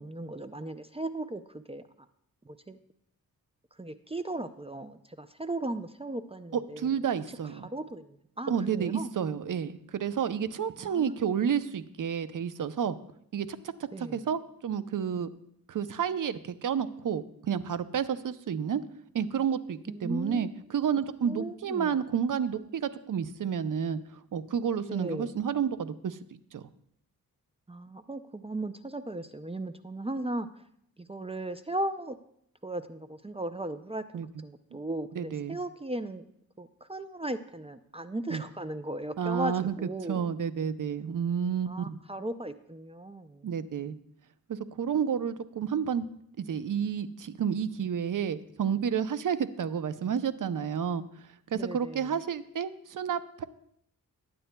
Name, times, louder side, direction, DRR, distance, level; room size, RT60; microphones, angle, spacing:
voice 1, 0.0-1.8 2.5-2.8 3.8-7.0 7.6-9.1 10.8-11.3 13.9-14.3 19.9-20.5 21.2-21.9 24.9-25.3 27.7-30.5 31.0-32.2 32.6-36.2 36.6-40.3 41.7-43.5 51.5-52.1, right 1 dB, 15° right, 10 dB, 0.4 m, -37 dB
voice 2, 6.5-7.7 8.5-13.0 13.3-13.5 14.0-15.3 15.7-18.8 19.1-24.0 24.3-26.2 26.5-26.6 34.1-34.3 35.2-35.6 38.3-38.4 39.2-39.7 40.1-42.0 43.4-44.0 44.5-46.1 46.4-51.0 51.5-53.4, right 7 dB, 60° right, 13 dB, 0.6 m, -30 dB
20.0 x 9.2 x 2.2 m, 0.71 s
wide cardioid pair, 90°, 35 cm